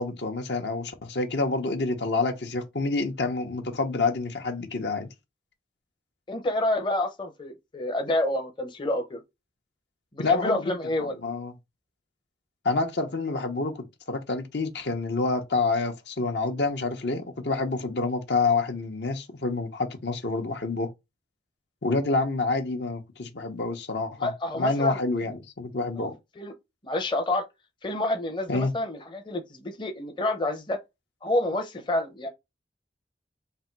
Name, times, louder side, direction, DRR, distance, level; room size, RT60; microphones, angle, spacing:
voice 1, 0.0-5.1 10.2-11.5 12.6-20.9 21.8-26.1 28.5-28.7, left 3 dB, 70° left, 0.9 m, -28 dB
voice 2, 6.3-9.2 10.1-11.2 24.2-25.0 26.0-26.1 26.4-26.5 26.8-27.5 27.8-30.8 31.2-32.3, left 1 dB, 25° left, 0.6 m, -28 dB
3.5 x 2.6 x 4.4 m
head